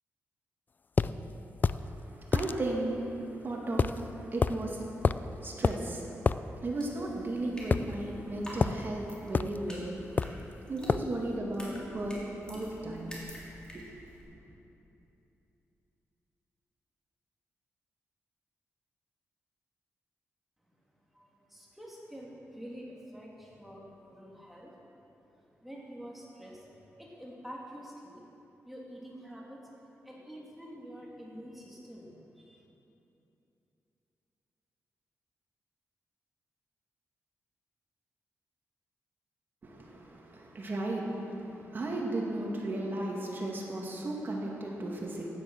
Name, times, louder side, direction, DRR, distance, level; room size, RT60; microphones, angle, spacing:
sound 1, 1.0-1.1 1.6-1.8 2.3-2.5 3.8-4.0 4.4-4.6 5.0-5.3 5.6-5.8 6.2-6.4 7.7-8.2 8.6-8.8 9.3-9.6 10.2-10.4 10.9-11.1, left 5 dB, 35° left, 0.3 m, -27 dB
voice 1, 1.7-10.4 10.7-13.1 13.7-13.8 14.3-14.4 39.6-45.3, right 2 dB, 40° right, -2 dB, 2.3 m, -35 dB
sound 2, 6.8-14.2, equal, 15° left, 3.2 m, -49 dB
voice 2, 21.1-24.7 25.5-28.2 28.6-29.6 30.0-32.1 32.4-32.6, equal, 5° right, -4 dB, 2.6 m, -47 dB
15.5 x 10.5 x 6.2 m, 2.9 s
wide cardioid pair, 120°, 5 cm